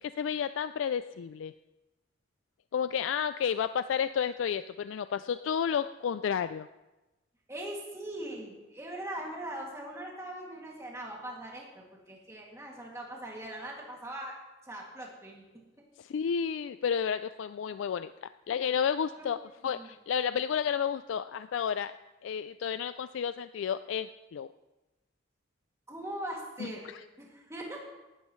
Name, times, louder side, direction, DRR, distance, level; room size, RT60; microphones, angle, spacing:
voice 1, 0.0-1.5 2.7-6.7 16.0-22.0 22.2-24.5 26.6-26.7, left 7 dB, 75° left, 12 dB, 0.3 m, -31 dB
voice 2, 7.5-14.3 14.6-15.5 19.1-19.3 19.6-19.9 25.9-26.9 27.2-27.8, right 1 dB, 15° right, -2 dB, 2.4 m, -41 dB
18.0 x 12.0 x 3.2 m, 1.1 s
head